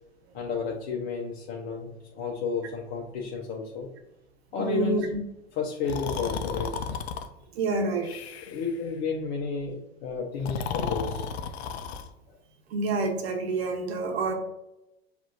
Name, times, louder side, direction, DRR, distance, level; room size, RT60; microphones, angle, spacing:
voice 1, 0.3-3.9 4.5-5.0 5.5-6.7 8.5-11.3 14.1-14.2, left 5 dB, 55° left, -2 dB, 1.0 m, -32 dB
voice 2, 4.6-5.2 7.5-8.1 12.7-14.3, right 3 dB, 75° right, 4 dB, 1.0 m, -28 dB
Breathing, 5.8-7.3 8.0-8.7 10.3-12.1, left 6 dB, 75° left, 0.6 m, -33 dB
5.9 x 2.7 x 2.6 m, 0.90 s
hypercardioid pair, 90°, 32 cm